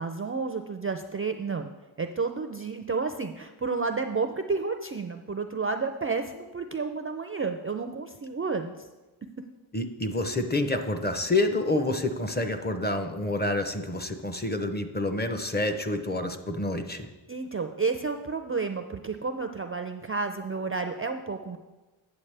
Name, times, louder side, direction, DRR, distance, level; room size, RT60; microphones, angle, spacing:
voice 1, 0.0-1.7 2.0-8.9 17.3-21.6, right 4 dB, 30° right, 7 dB, 0.4 m, -31 dB
voice 2, 9.7-17.1, left 2 dB, 20° left, 7 dB, 0.6 m, -28 dB
8.7 x 7.3 x 3.3 m, 1.1 s
wide cardioid pair, 80°, 49 cm